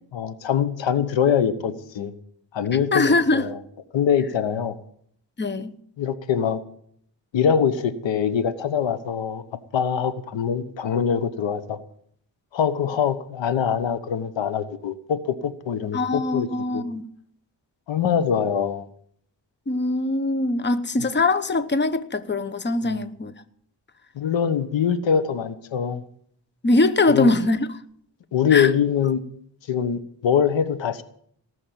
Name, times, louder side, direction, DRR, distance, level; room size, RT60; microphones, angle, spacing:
voice 1, 0.1-2.1 2.5-3.6 3.9-4.8 6.0-6.6 7.3-9.4 9.7-11.8 12.5-16.5 16.7-16.8 17.9-18.8 22.8-23.0 24.1-26.0 27.1-27.3 28.3-29.2 29.7-31.0, left 7 dB, 85° left, 1.2 m, -23 dB
voice 2, 2.9-3.5 5.4-5.7 15.9-17.0 19.7-23.3 26.6-27.7 28.5-28.7, left 2 dB, 25° left, 1.1 m, -22 dB
18.5 x 6.5 x 9.2 m
cardioid pair, 80°, 44 cm